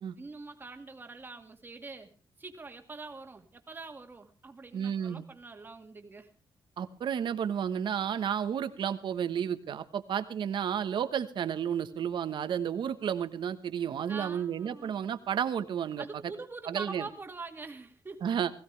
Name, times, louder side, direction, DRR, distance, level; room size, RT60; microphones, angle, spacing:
voice 1, 0.2-2.1 2.4-6.3 14.1-15.0 16.0-18.2, right 3 dB, 25° right, 5 dB, 2.1 m, -44 dB
voice 2, 4.7-5.2 6.8-16.3 16.7-17.1 18.2-18.5, right 8 dB, 70° right, 10 dB, 1.3 m, -32 dB
20.5 x 15.5 x 3.4 m, 0.37 s
wide cardioid pair, 140°, 8 cm